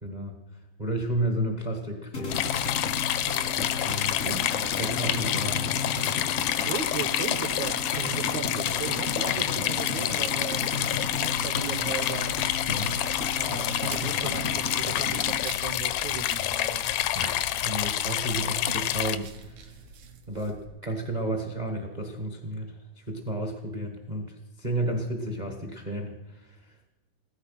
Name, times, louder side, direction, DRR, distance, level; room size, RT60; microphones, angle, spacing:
voice 1, 0.0-0.3 0.8-2.4 3.5-4.2 4.6-5.9 8.3-8.5 12.7-12.9 17.1-19.8 20.3-26.7, right 1 dB, 45° right, 3 dB, 0.5 m, -32 dB
sound 1, 2.1-15.8, left 3 dB, 50° left, 0.7 m, -34 dB
sound 2, 2.3-19.2, left 12 dB, 80° left, 1.6 m, -28 dB
voice 2, 6.7-10.6 11.2-12.3 13.4-16.9, right 7 dB, 70° right, 10 dB, 2.1 m, -36 dB
sound 3, 10.7-20.6, right 5 dB, 85° right, 3.2 m, -47 dB
16.0 x 13.0 x 5.8 m, 1.1 s
omnidirectional pair, 4.0 m